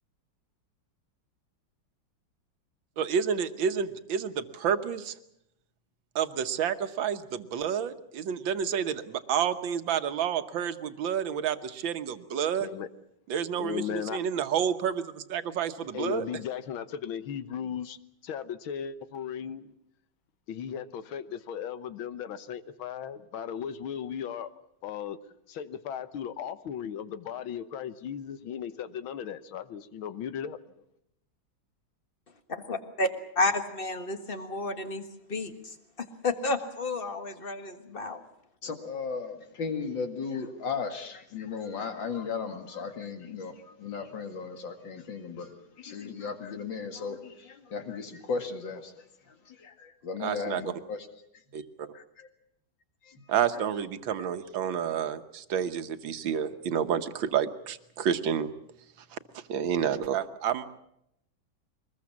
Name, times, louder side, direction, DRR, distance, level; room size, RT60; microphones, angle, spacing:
voice 1, 3.0-5.1 6.1-12.7 13.3-16.3 50.2-50.7 53.3-58.5 59.1-59.2 59.5-60.7, right 8 dB, 75° right, 10 dB, 1.8 m, -29 dB
voice 2, 13.6-14.2 15.9-18.0 18.2-19.6 20.5-24.5 24.8-25.2 25.5-30.6, left 8 dB, 90° left, 13 dB, 1.8 m, -36 dB
voice 3, 32.5-33.1 33.4-35.0 35.3-38.2, left 2 dB, 30° left, 8 dB, 1.7 m, -31 dB
voice 4, 38.6-43.5 43.8-45.5 45.8-48.9 49.5-51.0 53.1-53.2 54.5-54.7, left 5 dB, 70° left, 6 dB, 2.7 m, -36 dB
23.0 x 20.5 x 7.2 m, 0.78 s
omnidirectional pair, 2.1 m